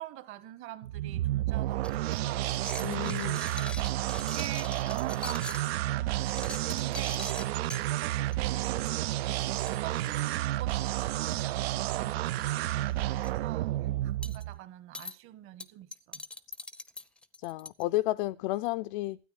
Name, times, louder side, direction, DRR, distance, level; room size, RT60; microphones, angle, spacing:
voice 1, 0.0-3.7 4.0-9.0 9.3-16.2, right 14 dB, 40° right, 1.4 m, -45 dB
sound 1, 0.8-14.6, right 15 dB, 65° right, 0.5 m, -31 dB
sound 2, 1.8-5.7 6.2-7.8 8.3-8.6 8.8-9.0 9.3-9.4 9.5-10.9 11.7-12.0 12.3-12.5 12.9-13.3 14.2-14.4 14.9-15.1 15.6-17.8, left 2 dB, 5° left, 0.6 m, -43 dB
voice 2, 2.8-3.4 17.4-19.2, left 17 dB, 55° left, 0.5 m, -31 dB
13.0 x 8.9 x 4.9 m
hypercardioid pair, 125°, 33 cm